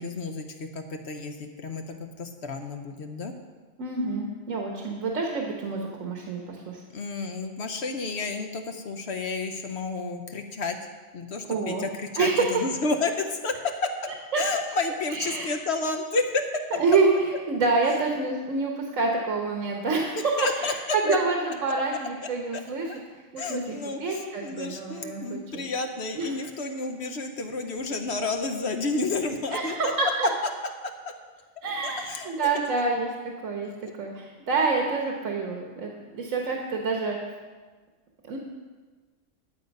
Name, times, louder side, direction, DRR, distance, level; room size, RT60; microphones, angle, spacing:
voice 1, 0.0-3.3 6.9-10.8 11.1-13.5 14.4-16.4 20.1-20.7 21.1-21.2 22.9-23.0 23.4-29.9 31.8-32.7 33.8-33.9, left 3 dB, 60° left, 5 dB, 1.1 m, -31 dB
voice 2, 3.8-6.8 11.5-11.9 12.2-12.5 14.3-14.4 15.1-15.5 16.8-17.1 17.5-20.2 20.6-22.9 23.3-23.7 24.0-25.7 26.1-26.3 29.5-30.3 31.6-33.7 34.0-37.2 38.3-38.4, right 4 dB, 80° right, 1 dB, 1.5 m, -27 dB
11.5 x 8.0 x 5.3 m, 1.4 s
omnidirectional pair, 1.3 m